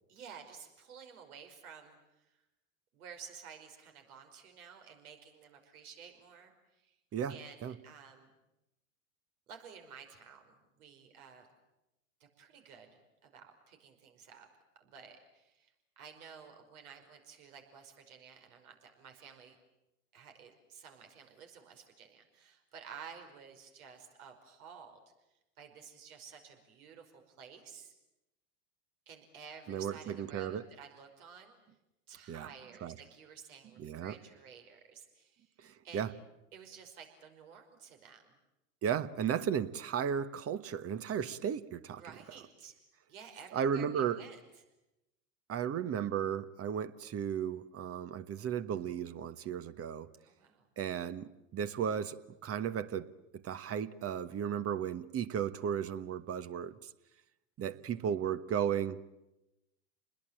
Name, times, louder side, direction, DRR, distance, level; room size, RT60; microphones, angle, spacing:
voice 1, 0.1-2.3 2.9-7.0 7.3-8.3 9.5-11.5 12.4-14.5 14.8-19.6 20.1-25.0 25.6-27.9 29.1-31.6 32.1-35.5 35.8-36.1 36.5-38.3 42.0-42.8 43.1-44.4 50.2-50.7 57.6-58.0, right 6 dB, 75° right, 4 dB, 5.5 m, -53 dB
voice 2, 7.1-7.7 29.7-30.6 32.3-32.5 32.8-32.9 33.8-34.2 35.6-36.1 38.8-42.0 43.5-44.2 45.5-50.1 50.8-56.8 57.6-59.0, right 8 dB, 30° right, 14 dB, 1.3 m, -35 dB
29.0 x 21.0 x 9.0 m, 0.93 s
hypercardioid pair, 95°, 44 cm